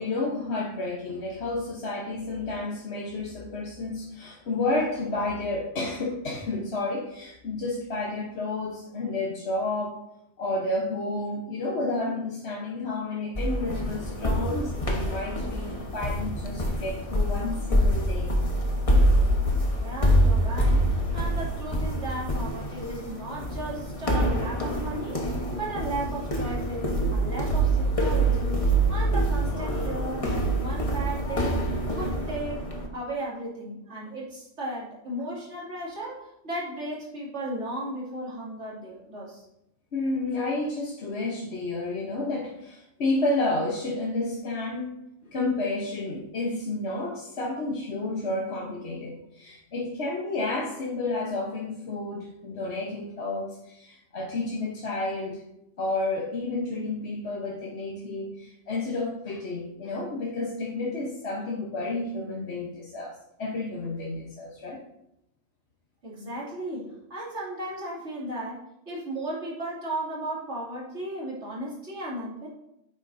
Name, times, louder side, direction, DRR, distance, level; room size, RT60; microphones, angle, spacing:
voice 1, 0.0-10.0 10.4-18.3 39.9-45.0 45.2-55.4 55.8-64.8, left 2 dB, 65° left, -3 dB, 1.4 m, -31 dB
sound 1, 13.4-32.9, right 1 dB, 30° left, 1.2 m, -25 dB
voice 2, 19.8-25.2 25.5-31.6 31.9-32.6 32.9-36.2 36.4-39.4 66.0-68.6 68.9-72.5, right 1 dB, 75° right, -5 dB, 3.0 m, -35 dB
9.6 x 7.6 x 2.7 m, 0.82 s
omnidirectional pair, 1.2 m